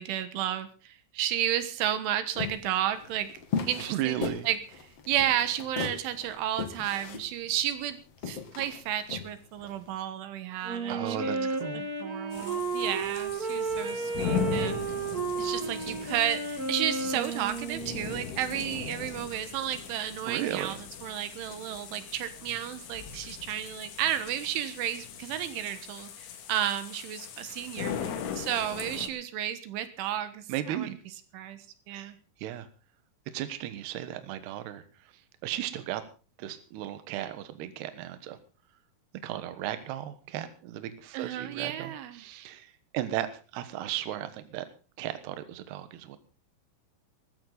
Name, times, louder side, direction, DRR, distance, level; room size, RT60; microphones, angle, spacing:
voice 1, 0.0-3.3 3.7-4.6 5.1-8.0 8.3-11.5 11.8-14.8 15.4-31.0 31.3-32.2 41.1-42.2, right 11 dB, 85° right, 11 dB, 3.9 m, -32 dB
sound 1, 2.3-9.8, left 6 dB, 50° left, 2.1 m, -37 dB
voice 2, 3.9-4.5 10.9-11.8 20.3-20.7 30.5-30.9 31.9-32.1 32.4-32.7 33.3-34.8 35.4-36.0 36.4-38.4 39.2-43.3 43.5-44.7 45.0-46.2, right 12 dB, 70° right, 11 dB, 3.1 m, -35 dB
Wind instrument woodwind instrument, 10.6-18.4, right 3 dB, 40° right, 1.3 m, -33 dB
sound 2, 12.3-29.1, left 8 dB, 90° left, 4.5 m, -39 dB
20.5 x 14.0 x 4.0 m, 0.34 s
omnidirectional pair, 5.4 m